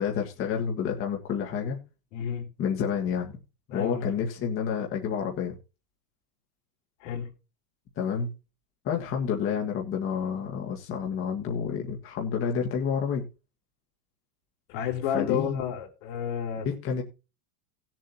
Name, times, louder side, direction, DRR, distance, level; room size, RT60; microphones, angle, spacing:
voice 1, 0.0-1.8 2.6-3.3 3.7-5.5 8.0-8.3 8.8-13.2 15.1-15.6 16.6-17.0, left 7 dB, 30° left, 1.8 m, -29 dB
voice 2, 2.1-2.4 3.7-4.1 7.0-7.3 14.7-16.7, left 9 dB, 60° left, 3.8 m, -30 dB
18.5 x 7.6 x 2.8 m
supercardioid pair, 160°, 44 cm